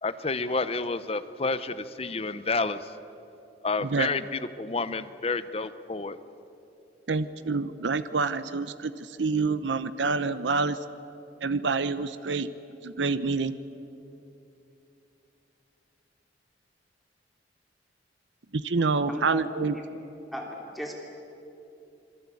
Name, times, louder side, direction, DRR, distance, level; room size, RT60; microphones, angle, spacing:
voice 1, 0.0-2.9 3.6-6.2, left 3 dB, 35° left, 13 dB, 0.8 m, -30 dB
voice 2, 7.1-10.8 11.4-12.5 12.8-13.5 18.5-19.7, right 4 dB, 85° right, 13 dB, 0.8 m, -27 dB
voice 3, 19.1-19.8 20.3-20.9, equal, ahead, -1 dB, 3.1 m, -36 dB
27.5 x 22.0 x 8.5 m, 2.9 s
head